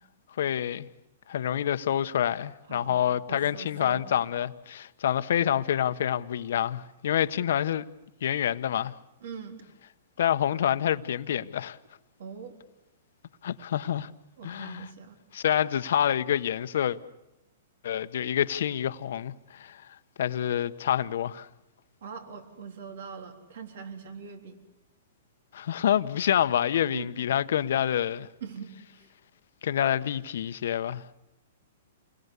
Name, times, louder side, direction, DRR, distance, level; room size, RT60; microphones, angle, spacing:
voice 1, 0.4-0.9 1.3-7.8 8.2-8.9 10.2-11.8 13.4-14.1 14.4-14.9 15.3-17.0 17.8-19.9 20.2-21.5 25.5-28.3 29.6-31.0, left 10 dB, 70° left, 1.0 m, -27 dB
voice 2, 2.7-4.0 9.2-9.6 12.2-12.5 14.4-15.2 22.0-24.6 26.9-27.1 28.4-29.1, right 6 dB, 70° right, 3.6 m, -42 dB
28.5 x 20.5 x 8.3 m
hypercardioid pair, 135°, 0 cm